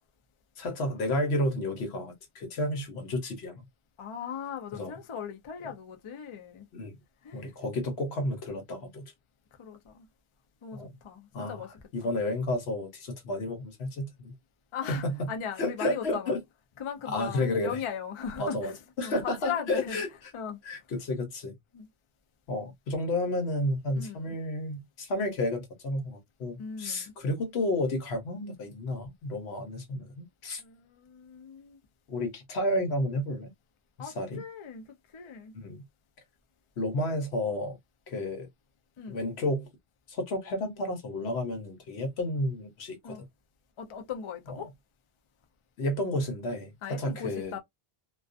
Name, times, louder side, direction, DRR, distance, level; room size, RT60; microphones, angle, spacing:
voice 1, 0.6-3.6 4.7-5.0 6.7-7.0 7.3-9.1 10.7-11.0 11.3-11.6 11.9-14.3 14.9-15.3 15.6-16.4 17.1-17.8 18.4-18.7 19.0-20.1 20.6-21.5 22.5-30.6 32.1-33.5 34.0-34.4 35.5-35.8 36.8-37.8 38.1-38.5 39.1-39.7 40.1-43.2 45.8-47.6, left 1 dB, 90° left, 1.1 m, -31 dB
voice 2, 4.0-6.7 7.2-7.6 9.6-10.1 10.6-11.7 12.0-12.1 14.7-16.4 16.8-20.0 20.3-20.6 21.7-21.9 23.9-24.3 26.6-27.1 30.6-31.8 34.0-35.6 39.0-39.2 43.0-43.2 43.8-44.7 46.8-47.6, left 7 dB, 45° left, 0.4 m, -38 dB
2.4 x 2.2 x 2.4 m
omnidirectional pair, 1.0 m